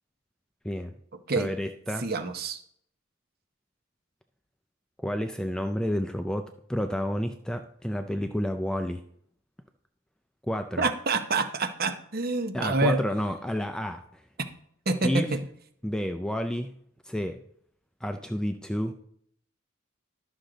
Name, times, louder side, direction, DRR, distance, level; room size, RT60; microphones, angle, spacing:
voice 1, 1.3-2.0 5.0-9.0 10.4-10.9 12.5-14.2 15.0-15.3 15.8-16.7 17.0-17.4 18.0-18.9, equal, 5° left, 6 dB, 0.4 m, -30 dB
voice 2, 2.0-2.6 10.8-13.0 14.9-15.4, right 3 dB, 45° right, 8 dB, 0.8 m, -27 dB
11.5 x 6.2 x 3.9 m, 0.67 s
head